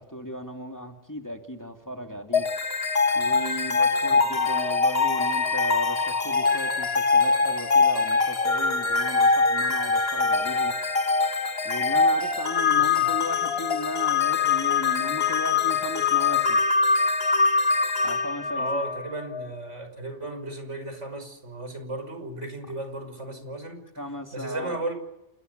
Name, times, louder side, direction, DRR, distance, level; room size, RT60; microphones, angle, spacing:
voice 1, 0.0-2.5 3.1-10.7 11.6-16.6 18.0-18.8 24.0-24.8, equal, 15° left, 3 dB, 2.7 m, -35 dB
sound 1, 2.3-19.5, left 4 dB, 60° left, 2.0 m, -23 dB
voice 2, 12.7-13.1 18.6-23.8 24.3-24.9, right 2 dB, 85° right, 7 dB, 6.1 m, -35 dB
29.0 x 22.0 x 6.9 m, 0.89 s
omnidirectional pair, 1.2 m